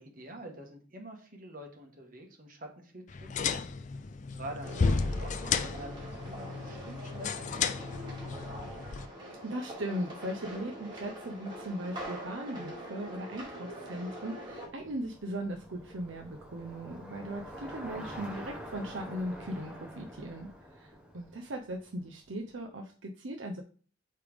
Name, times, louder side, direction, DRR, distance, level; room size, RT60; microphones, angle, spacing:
voice 1, 0.0-3.6 4.3-8.3, right 1 dB, 40° right, 2 dB, 1.3 m, -47 dB
sound 1, 3.1-9.1, left 5 dB, 35° left, 0.3 m, -33 dB
sound 2, 4.6-14.7, equal, 20° right, 2.1 m, -44 dB
voice 2, 9.4-23.6, right 1 dB, 65° right, 3 dB, 0.6 m, -38 dB
Bicycle, 13.9-22.2, equal, 5° right, 0.9 m, -47 dB
8.5 x 3.3 x 3.5 m, 0.41 s
head